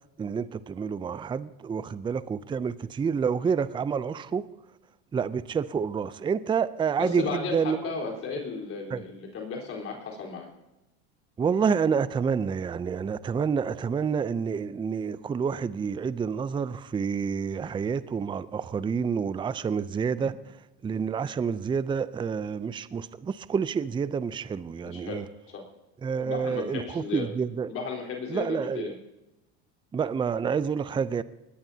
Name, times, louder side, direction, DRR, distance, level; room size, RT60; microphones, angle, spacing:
voice 1, 0.2-4.4 5.1-7.8 8.9-9.0 11.4-20.4 20.8-25.2 26.0-27.7 28.3-28.9 29.9-31.2, right 6 dB, 15° right, 16 dB, 0.5 m, -28 dB
voice 2, 7.0-10.5 20.3-20.4 24.8-25.2 25.5-25.6 26.2-27.3 27.7-28.9, left 5 dB, 45° left, 0 dB, 4.1 m, -34 dB
19.5 x 17.0 x 2.8 m, 0.97 s
supercardioid pair, 100°, 31 cm